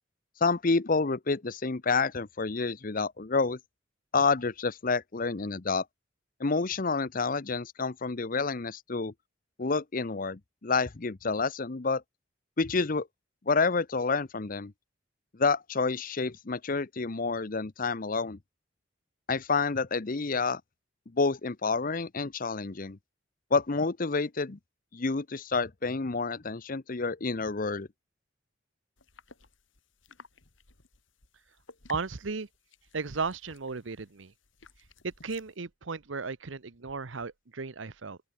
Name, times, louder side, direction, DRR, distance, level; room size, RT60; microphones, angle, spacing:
voice 1, 0.4-3.6 4.1-5.8 6.4-9.1 9.6-12.0 12.6-13.1 13.5-14.7 15.3-18.4 19.3-20.6 21.1-23.0 23.5-24.6 24.9-27.9, left 4 dB, 45° left, 0.8 m, -29 dB
sound 1, 29.0-35.6, left 4 dB, 75° left, 3.6 m, -56 dB
voice 2, 31.9-32.5 32.9-34.3 35.0-38.2, right 4 dB, 75° right, 0.9 m, -35 dB
open air
head